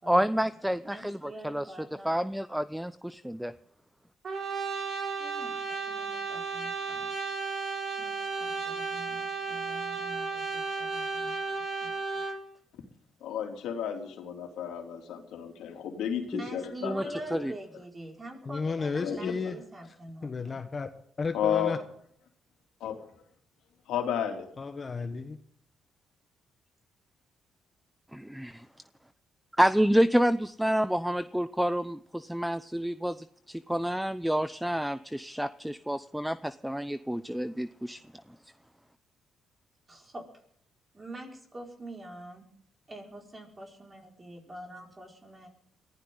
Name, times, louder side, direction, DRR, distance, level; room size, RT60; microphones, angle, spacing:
voice 1, 0.1-1.7 2.0-3.5 16.3-16.4 16.8-17.0 17.3-17.5 28.1-28.6 29.6-33.2 33.5-38.0, equal, 5° right, 14 dB, 0.6 m, -28 dB
voice 2, 0.6-2.3 5.2-7.1 8.0-11.9 16.4-20.6 39.9-40.3 40.9-42.5 42.9-45.5, right 1 dB, 25° right, 1 dB, 5.5 m, -45 dB
Brass instrument, 4.2-12.4, right 4 dB, 55° right, 3.8 m, -34 dB
voice 3, 13.2-16.9 17.3-17.4 19.0-19.2 21.3-21.8 22.8-23.0 23.9-24.5, left 9 dB, 85° left, 3 dB, 3.2 m, -32 dB
voice 4, 18.5-19.6 20.2-20.9 21.2-21.8 24.6-25.4, left 4 dB, 35° left, 7 dB, 1.2 m, -33 dB
22.5 x 15.0 x 4.0 m, 0.66 s
cardioid pair, 90°, 0 cm